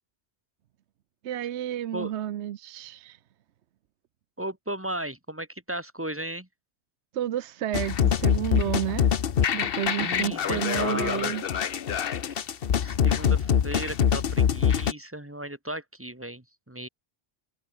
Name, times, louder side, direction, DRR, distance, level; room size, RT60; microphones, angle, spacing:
voice 1, 1.2-3.2 7.1-9.1 9.5-11.4, right 11 dB, 75° right, 1.0 m, -31 dB
voice 2, 4.4-6.5 10.0-11.3 12.3-12.4 12.8-16.9, right 1 dB, 10° right, 2.1 m, -35 dB
sound 1, 7.7-14.9, left 8 dB, 55° left, 1.0 m, -25 dB
omnidirectional pair, 1.2 m